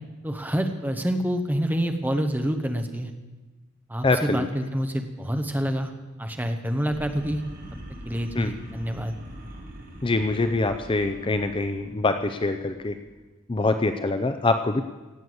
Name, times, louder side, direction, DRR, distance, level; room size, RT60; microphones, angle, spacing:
voice 1, 0.2-3.1 3.9-5.9 6.2-7.4 8.0-9.1, equal, 10° right, 6 dB, 0.9 m, -27 dB
voice 2, 4.0-4.5 8.4-8.5 10.0-13.0 13.5-14.8, left 3 dB, 25° left, 8 dB, 0.5 m, -24 dB
sound 1, 6.9-13.2, equal, 40° right, 2.0 m, -43 dB
17.0 x 6.8 x 7.9 m, 1.2 s
head